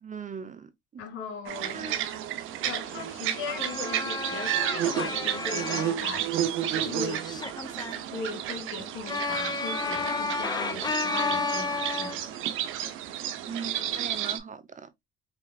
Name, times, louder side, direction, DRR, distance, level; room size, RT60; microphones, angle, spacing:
voice 1, 0.0-0.7 1.7-2.1 13.5-14.9, right 6 dB, 40° right, 0.8 m, -39 dB
voice 2, 1.0-2.1 2.6-7.2 8.1-12.2, left 4 dB, 80° left, 2.6 m, -38 dB
sound 1, 1.5-14.4, right 11 dB, 90° right, 0.6 m, -32 dB
sound 2, 3.2-6.0 7.1-8.0 9.1-12.3, left 4 dB, 20° left, 0.8 m, -32 dB
5.0 x 3.1 x 2.3 m
cardioid pair, 90°, 20 cm